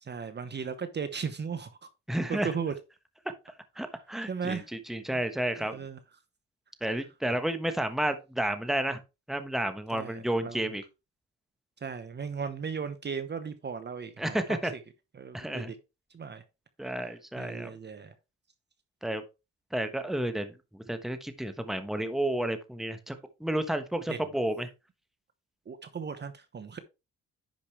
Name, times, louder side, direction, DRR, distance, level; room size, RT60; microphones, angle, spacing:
voice 1, 0.0-1.9 2.3-2.7 4.3-4.7 5.1-5.2 5.6-6.0 9.9-10.6 11.8-14.4 15.1-15.8 16.1-16.4 17.0-18.1 24.1-24.2 25.7-26.8, right 6 dB, 35° right, 1.0 m, -36 dB
voice 2, 2.1-2.5 3.4-5.8 6.8-9.0 9.3-10.8 14.2-14.7 15.3-15.7 16.8-17.8 19.0-19.2 19.7-23.1 23.4-24.7, right 1 dB, ahead, 1.2 m, -31 dB
10.5 x 5.3 x 3.3 m
cardioid pair, 90°, 30 cm